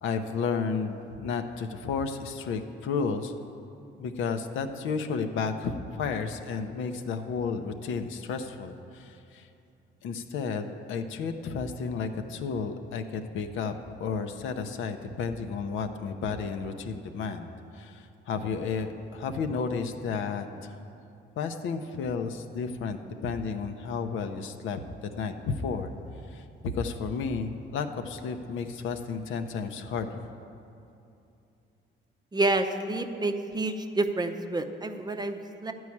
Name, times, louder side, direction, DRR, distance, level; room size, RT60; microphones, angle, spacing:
voice 1, 0.0-3.3 4.0-9.5 10.0-13.7 14.0-20.8 21.4-25.9 26.3-26.4 26.7-30.3, left 5 dB, 80° left, 7 dB, 0.7 m, -32 dB
voice 2, 32.3-35.7, right 2 dB, 20° right, 6 dB, 0.6 m, -29 dB
12.0 x 4.7 x 8.5 m, 2.7 s
cardioid pair, 90°, 20 cm